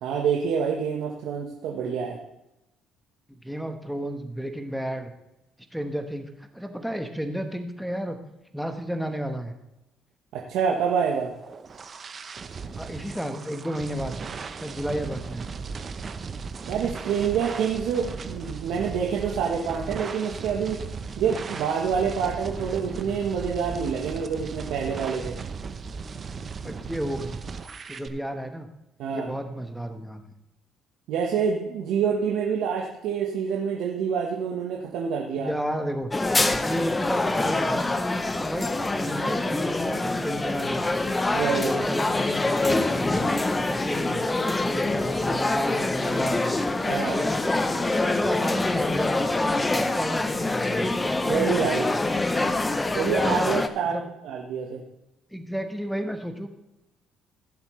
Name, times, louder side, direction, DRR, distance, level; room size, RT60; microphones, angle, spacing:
voice 1, 0.0-2.2 10.3-11.3 16.7-20.8 21.2-25.4 29.0-29.3 31.1-35.5 41.3-41.7 46.9-47.2 51.3-51.9 52.9-54.0 54.2-54.8, right 7 dB, 80° right, -1 dB, 1.3 m, -27 dB
voice 2, 3.3-5.1 5.7-8.2 8.5-9.5 12.8-14.2 14.6-15.4 26.6-27.4 27.9-28.7 29.1-30.3 35.4-36.1 36.4-37.9 38.3-41.0 41.5-43.2 43.7-44.2 44.6-46.6 47.0-49.3 49.7-50.9 53.9-54.0 55.3-56.5, equal, ahead, 5 dB, 1.2 m, -32 dB
sound 1, 11.1-28.1, right 5 dB, 40° right, 0.8 m, -37 dB
sound 2, 36.1-53.7, left 2 dB, 20° left, 0.7 m, -25 dB
16.5 x 7.4 x 3.2 m, 0.91 s
cardioid pair, 90°, 0 cm